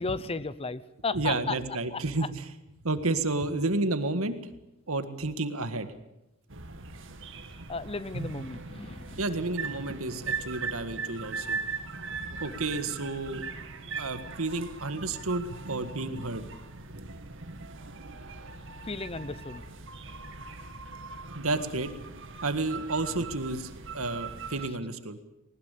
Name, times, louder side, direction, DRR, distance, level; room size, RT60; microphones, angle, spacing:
voice 1, 0.0-1.6 7.7-9.2 18.8-19.6, left 3 dB, 30° left, 17 dB, 0.8 m, -34 dB
voice 2, 1.1-2.5 2.8-4.4 4.9-5.9 9.2-11.6 12.4-13.5 14.0-16.4 21.3-21.9 22.4-25.2, right 2 dB, 80° right, 10 dB, 1.8 m, -31 dB
sound 1, 6.5-24.7, right 4 dB, 65° right, 2.1 m, -40 dB
20.0 x 19.0 x 8.4 m, 0.90 s
head